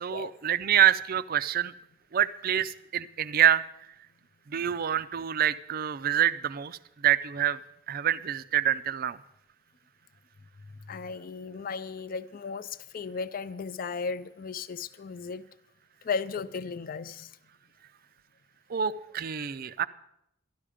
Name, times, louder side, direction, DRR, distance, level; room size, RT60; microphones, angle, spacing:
voice 1, 0.0-1.7 2.1-3.7 4.5-7.6 7.9-9.2 18.7-19.9, right 10 dB, 45° right, 0.4 m, -26 dB
voice 2, 10.9-15.4 16.0-17.3, left 5 dB, 40° left, 0.4 m, -35 dB
13.0 x 11.5 x 5.0 m
head